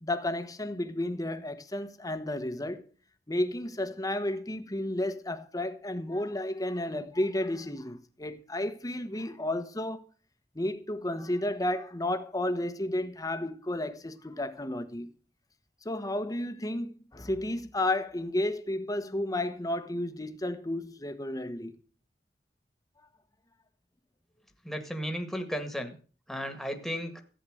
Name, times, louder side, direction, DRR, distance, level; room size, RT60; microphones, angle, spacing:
voice 1, 0.0-2.8 3.3-10.0 10.5-15.1 15.8-21.8, left 1 dB, 20° left, 1.2 m, -32 dB
voice 2, 24.6-26.0 26.3-27.2, equal, ahead, 1.8 m, -34 dB
14.5 x 8.4 x 6.5 m
head